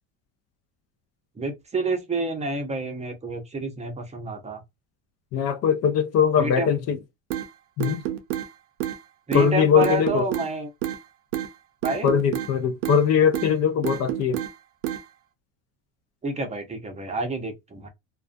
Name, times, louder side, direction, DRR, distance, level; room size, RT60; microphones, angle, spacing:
voice 1, 1.4-4.6 6.4-6.7 9.3-10.7 11.8-12.1 16.2-17.9, right 3 dB, 20° right, 0.6 m, -29 dB
voice 2, 5.3-7.0 7.8-8.0 9.3-10.3 12.0-14.4, left 7 dB, 45° left, 0.5 m, -21 dB
sound 1, 7.3-7.5 7.8-8.5 8.8-9.0 9.3-9.5 9.8-10.5 10.8-11.0 11.3-11.5 11.8-12.5 12.8-13.0 13.3-13.5 13.8-14.5 14.8-15.0, right 12 dB, 80° right, 0.6 m, -28 dB
2.4 x 2.3 x 2.5 m
supercardioid pair, 115°, 37 cm